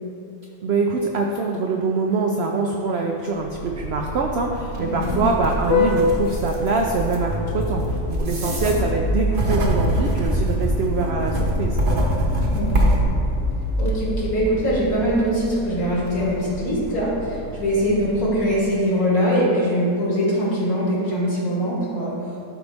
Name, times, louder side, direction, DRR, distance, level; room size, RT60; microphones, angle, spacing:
voice 1, 0.6-11.8, right 4 dB, 80° right, 1 dB, 0.5 m, -24 dB
Vehicle horn car horn honking, 3.3-18.7, left 2 dB, 20° left, 0.5 m, -28 dB
voice 2, 4.8-5.2 8.4-8.7 12.5-13.0 13.8-22.1, equal, 65° left, -6 dB, 2.4 m, -22 dB
sound 1, 5.0-13.1, right 1 dB, 40° right, 0.9 m, -24 dB
12.0 x 4.0 x 3.4 m, 2.7 s
omnidirectional pair, 1.6 m